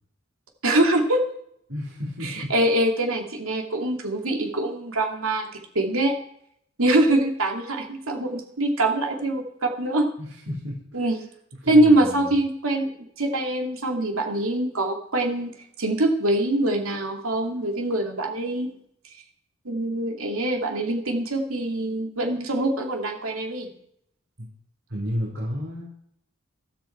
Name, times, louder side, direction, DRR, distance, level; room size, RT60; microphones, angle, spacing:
voice 1, 0.6-1.2 2.2-5.5 5.7-6.1 6.8-10.1 10.9-11.2 11.7-12.9 13.2-15.5 15.8-18.8 19.6-23.7, right 1 dB, 80° right, 3 dB, 2.6 m, -23 dB
voice 2, 1.7-2.5 10.2-11.0 11.6-12.3 24.9-26.0, equal, 60° right, -5 dB, 4.5 m, -32 dB
15.0 x 13.5 x 4.6 m, 0.70 s
head